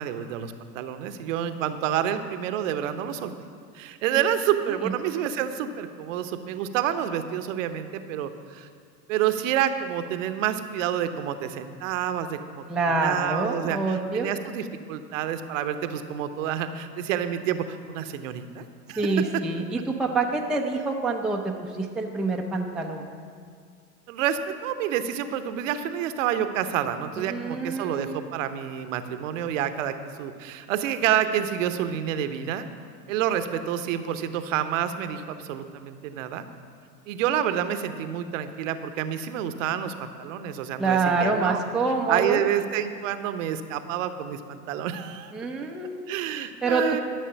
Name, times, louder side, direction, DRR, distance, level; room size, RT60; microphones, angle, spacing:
voice 1, 0.0-3.3 3.7-8.7 9.1-19.3 24.1-32.7 33.1-36.5 37.1-41.6 42.1-45.3 46.1-47.0, right 10 dB, 55° right, 10 dB, 0.9 m, -28 dB
voice 2, 12.7-14.3 19.0-23.1 27.2-28.3 40.8-42.4 45.3-46.1 46.6-47.0, right 3 dB, ahead, 1 dB, 0.5 m, -26 dB
12.5 x 6.4 x 7.0 m, 2.1 s
hypercardioid pair, 100°, 47 cm